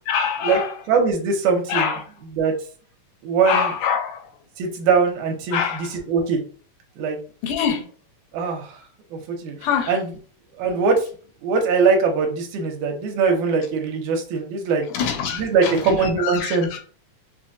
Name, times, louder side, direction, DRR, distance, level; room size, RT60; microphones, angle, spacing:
voice 1, 0.1-0.8 1.7-2.0 3.4-4.3 5.5-5.9 7.4-7.9 9.6-10.0 14.9-15.8 16.2-16.8, left 7 dB, 85° left, 6 dB, 2.2 m, -24 dB
voice 2, 0.9-2.0 2.3-2.5 3.2-3.7 4.6-6.4 7.0-7.2 8.3-8.8 9.1-9.6 9.9-10.1 10.6-11.0 11.4-14.9 15.3-16.8, right 5 dB, 75° right, 3 dB, 2.1 m, -21 dB
5.4 x 2.2 x 2.6 m, 0.41 s
omnidirectional pair, 3.7 m